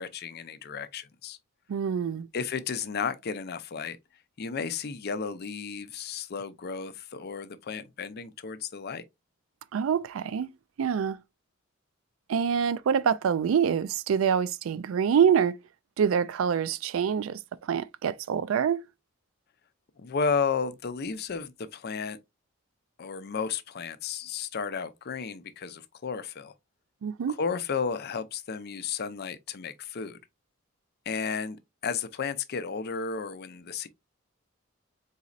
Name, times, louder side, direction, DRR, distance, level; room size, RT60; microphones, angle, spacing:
voice 1, 0.0-1.4 2.3-4.0 4.4-9.0 20.0-22.2 23.0-26.5 27.3-30.2 31.1-33.9, left 5 dB, 50° left, 0.5 m, -33 dB
voice 2, 1.7-2.3 9.7-10.5 10.8-11.2 12.3-15.6 16.0-18.9 27.0-27.3, right 7 dB, 75° right, 0.3 m, -26 dB
4.1 x 4.0 x 2.4 m
head